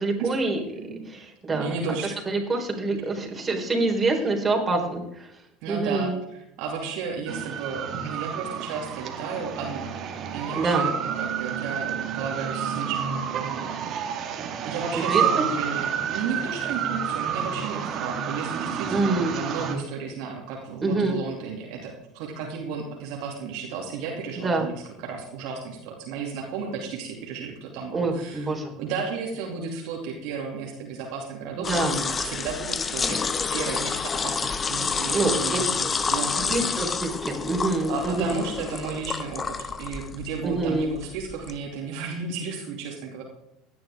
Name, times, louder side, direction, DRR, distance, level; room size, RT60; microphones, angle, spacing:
voice 1, 0.0-0.6 0.9-1.7 2.0-5.3 5.7-6.2 10.5-10.9 15.1-15.5 18.9-19.4 20.8-21.2 24.4-24.7 27.9-28.7 31.6-31.9 35.1-35.9 36.3-38.4 40.4-40.9, right 3 dB, 20° right, 0 dB, 4.3 m, -26 dB
voice 2, 0.7-1.2 1.5-2.2 3.8-4.3 5.6-10.0 10.3-13.9 14.6-28.5 28.8-36.8 37.9-43.2, right 5 dB, 60° right, 0 dB, 2.7 m, -34 dB
sound 1, 7.3-19.8, right 8 dB, 45° right, 2.0 m, -29 dB
sound 2, 31.6-41.6, left 5 dB, 25° left, 0.9 m, -29 dB
17.0 x 10.5 x 3.7 m, 0.83 s
hypercardioid pair, 70°, 0 cm